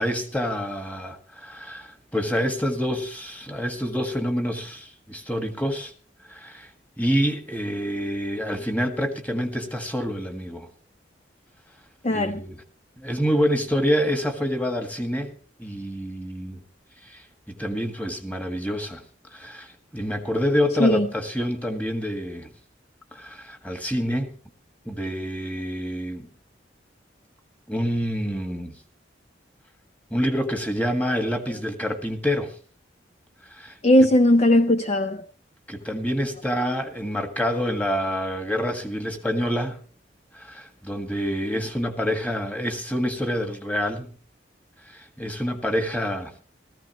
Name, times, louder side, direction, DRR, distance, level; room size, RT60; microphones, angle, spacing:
voice 1, 0.0-5.9 6.3-6.7 7.0-10.7 12.1-12.6 13.0-15.3 15.6-16.6 17.0-19.0 19.3-22.5 23.1-24.3 24.9-26.3 27.7-28.7 30.1-32.6 33.5-33.8 35.7-39.8 40.3-44.1 44.9-46.3, equal, 10° left, 1.7 m, -27 dB
voice 2, 12.0-12.4 20.8-21.1 33.8-35.2, left 1 dB, 35° left, 0.6 m, -18 dB
18.0 x 14.5 x 3.0 m
head